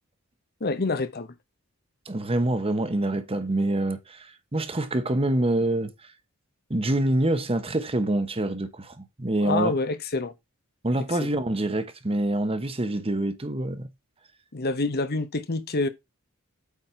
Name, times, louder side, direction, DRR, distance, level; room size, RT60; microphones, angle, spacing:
voice 1, 0.6-1.3 9.4-10.3 11.0-11.3 14.5-15.9, left 3 dB, 45° left, 1.0 m, -27 dB
voice 2, 2.1-5.9 6.7-9.7 10.8-13.9, right 1 dB, 25° right, 1.0 m, -26 dB
8.4 x 4.3 x 4.4 m
head